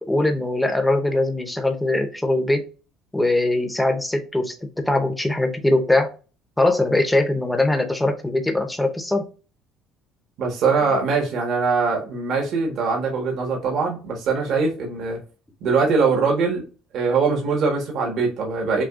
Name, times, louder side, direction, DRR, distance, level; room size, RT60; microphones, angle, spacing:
voice 1, 0.0-2.6 3.1-6.1 6.6-9.2, left 2 dB, 5° left, 5 dB, 0.7 m, -21 dB
voice 2, 10.4-15.2 15.6-16.6 16.9-18.8, right 4 dB, 55° right, 0 dB, 1.3 m, -22 dB
6.0 x 2.3 x 2.4 m, 0.35 s
cardioid pair, 145°, 0 cm